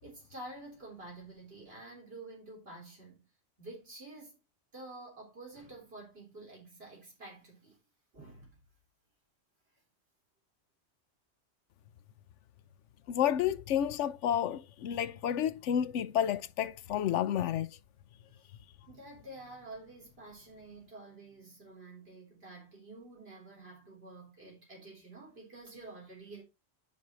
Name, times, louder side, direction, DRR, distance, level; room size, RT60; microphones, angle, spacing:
voice 1, 0.0-3.2 3.6-4.4 4.7-7.8 8.1-8.6 18.8-26.4, right 2 dB, 55° right, 4.0 m, -49 dB
voice 2, 13.1-17.7, left 10 dB, 75° left, 1.0 m, -30 dB
10.0 x 4.8 x 4.0 m
omnidirectional pair, 1.2 m